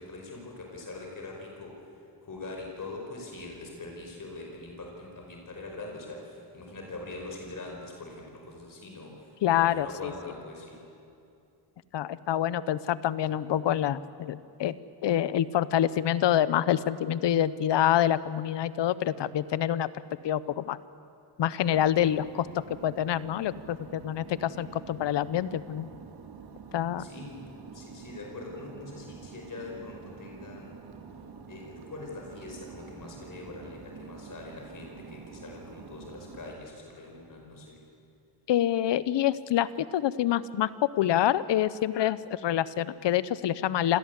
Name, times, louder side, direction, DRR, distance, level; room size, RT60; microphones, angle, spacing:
voice 1, 0.0-1.8 2.2-10.8 27.0-27.5 27.7-30.8 31.5-37.8, left 2 dB, 45° left, 1 dB, 5.0 m, -43 dB
voice 2, 9.4-10.1 11.9-14.8 15.0-19.9 20.2-20.8 21.4-22.5 22.8-25.9 26.7-27.1 38.5-40.7 41.0-44.0, left 11 dB, 80° left, 17 dB, 0.9 m, -26 dB
sound 1, 21.6-36.5, right 5 dB, 65° right, 2.4 m, -47 dB
26.5 x 17.0 x 8.3 m, 2.6 s
cardioid pair, 90°, 42 cm